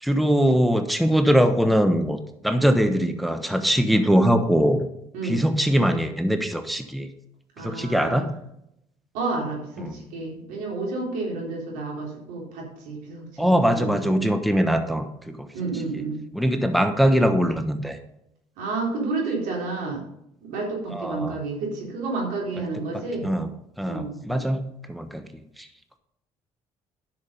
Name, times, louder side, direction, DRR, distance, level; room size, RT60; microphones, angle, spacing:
voice 1, 0.0-2.2 2.4-4.9 5.2-7.1 7.6-8.3 9.8-10.1 13.4-15.5 15.9-16.0 16.3-18.0 20.9-21.4 22.6-22.7 22.9-23.5 23.8-25.3 25.6-25.7, equal, ahead, 7 dB, 1.1 m, -22 dB
voice 2, 7.6-8.3 9.1-14.1 15.5-16.2 18.6-20.0 20.4-23.3 23.9-24.4, right 3 dB, 75° right, -2 dB, 3.9 m, -30 dB
10.5 x 6.5 x 5.4 m, 0.79 s
hypercardioid pair, 60°, 14 cm